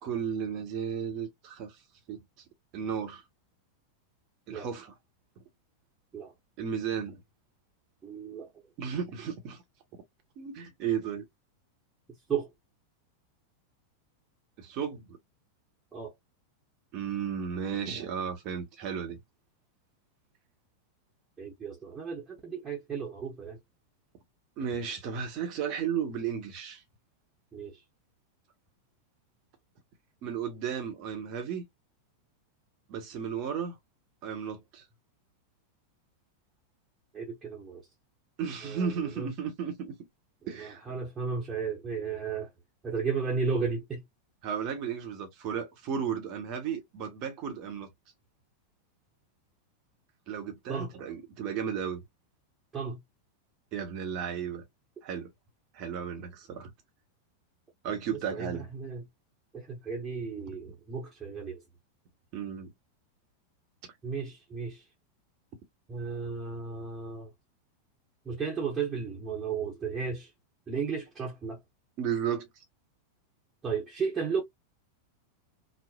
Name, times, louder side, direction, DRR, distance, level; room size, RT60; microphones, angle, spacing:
voice 1, 0.0-1.8 2.1-2.2 2.7-3.2 4.5-4.9 6.6-7.2 8.8-9.6 10.4-11.3 14.6-15.2 16.9-19.2 24.6-26.8 30.2-31.6 32.9-33.8 34.2-34.8 38.4-40.0 40.5-40.8 44.4-47.9 50.3-52.0 53.7-54.6 55.0-55.3 55.7-56.7 57.8-58.6 62.3-62.7 72.0-72.5, right 7 dB, 40° right, 0.8 m, -34 dB
voice 2, 8.0-8.5 12.3-12.5 15.9-16.1 21.4-23.6 27.5-27.8 37.1-37.9 38.6-39.3 40.4-42.5 42.8-44.0 50.7-50.9 52.7-53.0 58.3-59.0 59.5-61.6 64.0-64.9 65.9-67.3 68.2-70.3 70.7-71.6 73.6-74.4, right 5 dB, 15° right, 0.9 m, -34 dB
3.1 x 2.0 x 2.2 m
figure-of-eight pair, 90°, 0 cm